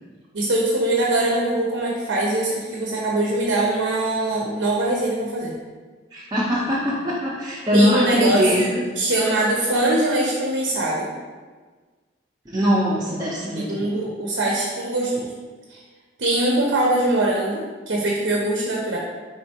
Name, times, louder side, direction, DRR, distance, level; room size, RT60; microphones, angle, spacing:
voice 1, 0.3-5.5 7.7-8.7 9.0-11.1 13.6-15.3 15.7-15.8 16.2-19.0, right 1 dB, 75° right, -2 dB, 0.6 m, -22 dB
voice 2, 6.1-8.8 12.5-14.0, equal, 20° right, -6 dB, 0.4 m, -21 dB
4.3 x 3.6 x 2.8 m, 1.4 s
head